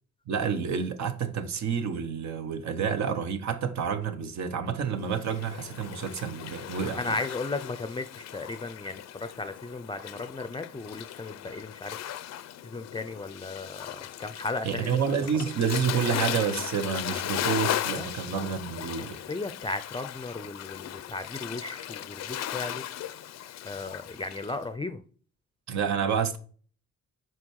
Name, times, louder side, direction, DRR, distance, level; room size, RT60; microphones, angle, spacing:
voice 1, 0.3-7.2 14.6-19.2 25.7-26.4, right 6 dB, 65° right, 1.1 m, -29 dB
Waves surf, 5.1-24.6, left 11 dB, 60° left, 0.5 m, -37 dB
voice 2, 6.9-12.0 12.6-15.0 17.9-18.1 19.0-22.8 23.6-25.0, left 3 dB, 15° left, 0.5 m, -35 dB
6.2 x 4.5 x 4.6 m
cardioid pair, 90°, 30 cm